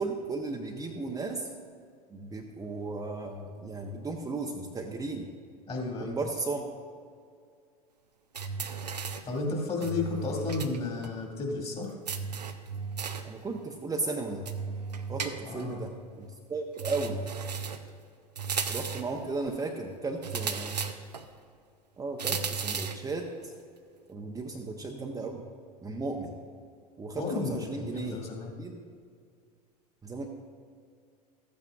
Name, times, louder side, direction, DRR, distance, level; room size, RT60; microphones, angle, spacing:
voice 1, 0.0-1.5 2.1-5.3 6.0-6.6 10.2-10.4 13.2-14.5 15.1-17.2 18.7-20.8 22.0-23.5 24.1-25.5 25.8-26.4 27.0-28.2 28.6-28.8 30.0-30.3, right 3 dB, 15° right, 1 dB, 0.8 m, -35 dB
voice 2, 5.7-6.2 9.3-11.9 15.4-15.9 27.2-28.5, left 3 dB, 30° left, 0 dB, 2.1 m, -33 dB
sound 1, 8.3-9.3 9.8-10.8 11.0-11.1 12.1-13.3 14.5-15.7 16.8-17.9 18.4-19.2 20.2-21.3 22.2-23.1, right 5 dB, 85° right, 0.6 m, -35 dB
14.0 x 8.8 x 2.4 m, 2.2 s
figure-of-eight pair, 80°, 21 cm